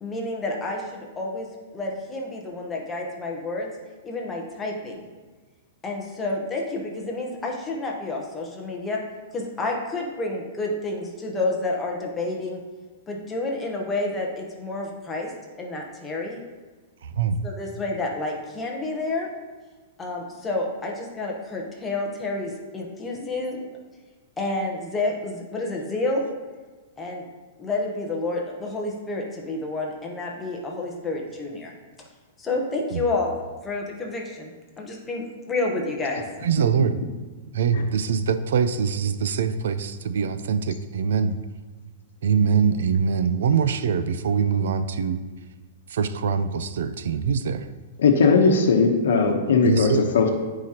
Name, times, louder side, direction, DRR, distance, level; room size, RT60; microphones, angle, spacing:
voice 1, 0.0-0.8 1.2-3.7 4.0-5.1 5.8-9.0 9.3-12.6 13.1-15.3 15.6-16.4 17.4-19.3 20.0-23.7 24.4-26.2 27.0-27.2 27.6-31.7 32.4-33.4 33.6-36.2, left 2 dB, 10° left, -1 dB, 0.9 m, -29 dB
voice 2, 17.0-17.4 32.9-33.0 36.4-37.0 37.5-41.4 42.2-45.2 45.9-47.7 49.6-50.1, right 6 dB, 70° right, 11 dB, 0.5 m, -23 dB
voice 3, 48.0-50.3, left 4 dB, 85° left, 2 dB, 0.9 m, -18 dB
13.0 x 4.8 x 2.9 m, 1.3 s
supercardioid pair, 180°, 0 cm